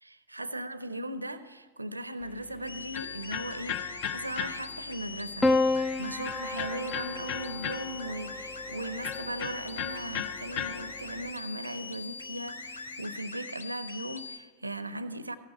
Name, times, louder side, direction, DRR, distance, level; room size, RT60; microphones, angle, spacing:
voice 1, 0.0-5.5 6.0-15.4, right 1 dB, 85° right, 14 dB, 0.6 m, -38 dB
Electric guitar, 2.2-11.3, left 9 dB, 45° left, 0.6 m, -39 dB
sound 1, 2.7-14.4, left 4 dB, 75° left, 0.8 m, -42 dB
Piano, 5.4-9.9 11.1-11.8, left 2 dB, 10° left, 0.3 m, -31 dB
15.0 x 5.8 x 8.0 m, 1.4 s
figure-of-eight pair, 90°, 0 cm